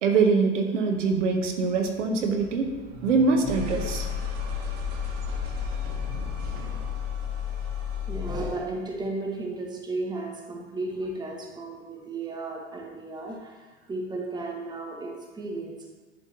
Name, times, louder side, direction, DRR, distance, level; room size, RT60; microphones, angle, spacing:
voice 1, 0.0-2.7 3.0-4.1, right 4 dB, 70° right, 3 dB, 0.9 m, -23 dB
sound 1, 0.9-8.7, left 6 dB, 45° right, 1.4 m, -33 dB
voice 2, 8.0-15.9, right 2 dB, 10° right, 0 dB, 0.9 m, -34 dB
10.5 x 3.5 x 2.8 m, 1.3 s
figure-of-eight pair, 90°, 38 cm